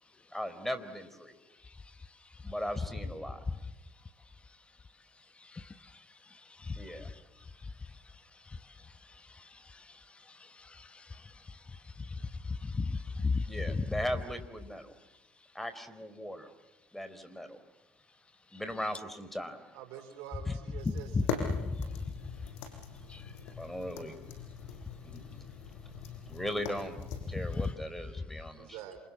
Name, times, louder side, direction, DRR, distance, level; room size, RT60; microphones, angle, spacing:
voice 1, 0.3-1.3 2.4-3.4 6.8-7.1 13.5-14.9 15.5-16.5 16.9-17.6 18.5-19.6 20.5-20.6 23.6-24.2 25.0-25.2 26.2-27.0 27.3-28.8, equal, 5° left, 11 dB, 4.3 m, -38 dB
voice 2, 10.6-11.0 12.1-12.2 12.5-13.8 21.1-21.8 23.1-23.2 27.6-27.7, left 4 dB, 25° left, 11 dB, 1.2 m, -33 dB
voice 3, 19.7-21.3 28.6-29.0, right 10 dB, 75° right, 9 dB, 4.2 m, -46 dB
sound 1, 20.8-27.7, left 6 dB, 75° left, 5.9 m, -41 dB
28.0 x 28.0 x 7.5 m, 1.2 s
hypercardioid pair, 65°, 5 cm